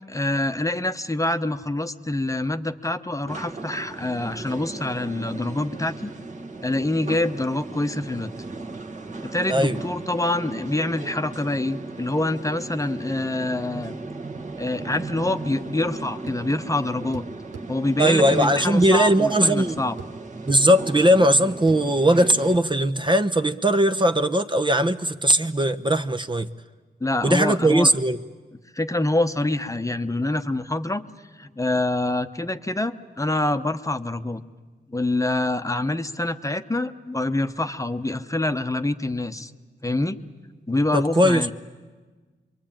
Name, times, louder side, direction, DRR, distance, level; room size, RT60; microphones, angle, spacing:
voice 1, 0.0-6.1 6.6-8.3 9.2-14.0 14.6-17.2 17.7-20.0 27.0-27.9 28.7-31.0 31.3-34.4 34.9-39.5 39.8-40.2 40.7-41.5, left 2 dB, 15° left, 1.0 m, -26 dB
sound 1, 3.3-22.5, right 3 dB, 40° right, 1.7 m, -36 dB
sound 2, 16.3-16.5 17.1-17.7 18.8-19.0 20.0-20.2 20.5-20.6 21.7-21.8, right 6 dB, 80° right, 1.3 m, -40 dB
voice 2, 18.0-19.8 20.5-26.5 27.2-28.2 40.9-41.5, right 1 dB, 25° right, 0.9 m, -19 dB
26.5 x 23.0 x 8.9 m
cardioid pair, 65°, 19 cm